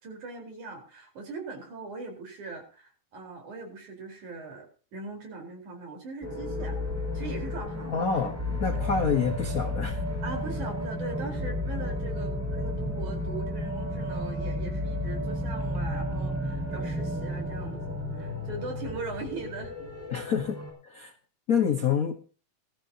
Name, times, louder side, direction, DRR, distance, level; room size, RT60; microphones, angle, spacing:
voice 1, 0.0-6.8 7.1-8.1 8.7-8.8 10.2-20.3, right 3 dB, 70° right, 2 dB, 5.7 m, -40 dB
sound 1, 6.2-20.7, left 1 dB, 5° right, 6.6 m, -32 dB
voice 2, 7.9-10.0 20.1-20.6 20.8-21.1 21.5-22.1, left 6 dB, 55° left, 4 dB, 0.9 m, -27 dB
20.5 x 13.5 x 2.8 m, 0.36 s
omnidirectional pair, 3.6 m